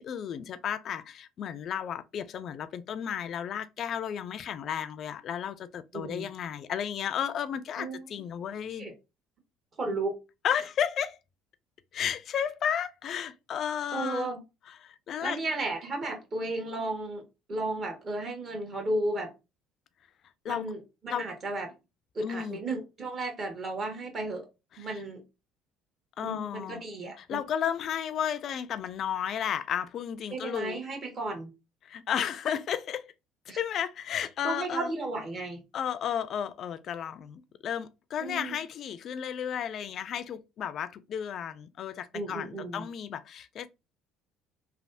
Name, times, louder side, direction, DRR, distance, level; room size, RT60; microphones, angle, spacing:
voice 1, 0.0-8.9 10.4-11.2 11.9-14.3 14.8-15.4 20.4-20.7 21.1-21.2 22.2-22.6 26.2-26.8 27.2-30.8 31.8-33.1 33.5-34.9 35.7-43.7, left 9 dB, 55° left, 0.3 m, -33 dB
voice 2, 5.9-6.3 7.8-8.2 8.8-8.9 9.8-10.1 13.9-14.4 15.2-17.2 17.5-19.3 20.5-21.7 22.1-24.5 24.8-25.2 26.2-27.4 30.3-31.5 33.5-33.6 34.4-35.6 38.2-38.6 42.1-42.9, right 2 dB, 45° right, 1.3 m, -34 dB
3.2 x 2.3 x 2.6 m
hypercardioid pair, 70°, 0 cm